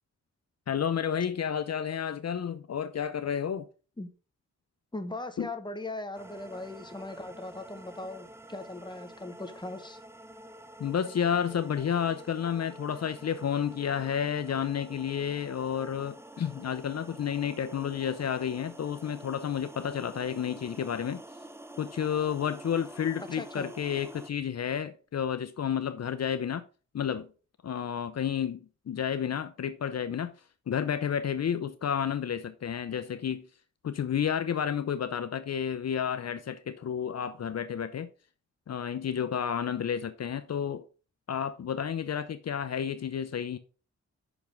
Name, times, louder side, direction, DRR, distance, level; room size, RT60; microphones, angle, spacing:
voice 1, 0.7-3.7 5.4-5.5 10.8-21.2 21.8-26.6 26.9-27.3 27.6-33.5 33.8-38.1 38.7-40.8 41.3-43.6, left 8 dB, 60° left, 0.6 m, -31 dB
voice 2, 4.9-10.0 23.3-23.7, left 2 dB, 15° left, 1.1 m, -39 dB
sound 1, 6.1-24.3, right 1 dB, 10° right, 0.6 m, -48 dB
5.9 x 5.3 x 5.0 m
wide cardioid pair, 85°, 29 cm